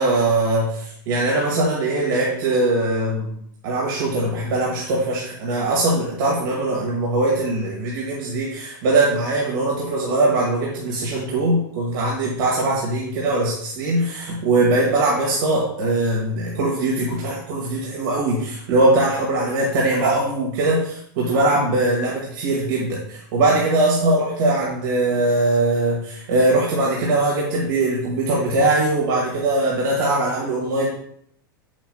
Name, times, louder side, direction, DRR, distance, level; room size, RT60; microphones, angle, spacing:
voice 1, 0.0-3.3 3.6-30.9, right 2 dB, 70° right, -4 dB, 1.9 m, -21 dB
7.3 x 7.2 x 2.3 m, 0.66 s
hypercardioid pair, 110°, 12 cm